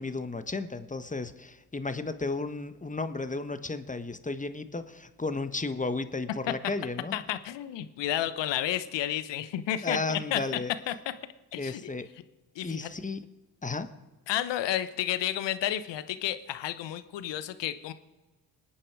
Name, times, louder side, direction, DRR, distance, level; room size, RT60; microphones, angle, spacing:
voice 1, 0.0-7.2 9.8-10.7 11.6-12.1 12.6-13.2 13.6-13.9, left 3 dB, 15° left, 10 dB, 1.4 m, -33 dB
voice 2, 7.1-10.4 10.9-11.0 11.5-11.9 12.5-12.9 14.3-17.9, left 12 dB, 60° left, 13 dB, 1.2 m, -31 dB
26.5 x 8.8 x 4.9 m, 1.2 s
hypercardioid pair, 45°, 48 cm